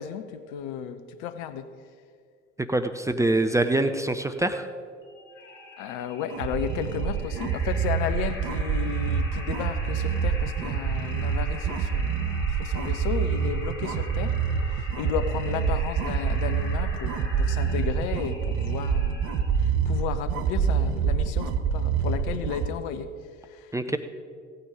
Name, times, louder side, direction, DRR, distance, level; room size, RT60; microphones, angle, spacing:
voice 1, 0.0-1.7 5.8-14.4 14.7-19.2 19.6-23.1 23.4-24.0, left 9 dB, 55° left, 11 dB, 0.8 m, -34 dB
voice 2, 2.7-4.7 23.7-24.0, right 2 dB, 10° right, 8 dB, 0.6 m, -24 dB
sound 1, 5.0-19.6, left 2 dB, 35° left, 3.6 m, -43 dB
sound 2, 6.3-22.7, right 6 dB, 50° right, 0.9 m, -26 dB
16.0 x 8.8 x 5.0 m, 2.1 s
figure-of-eight pair, 60°, 36 cm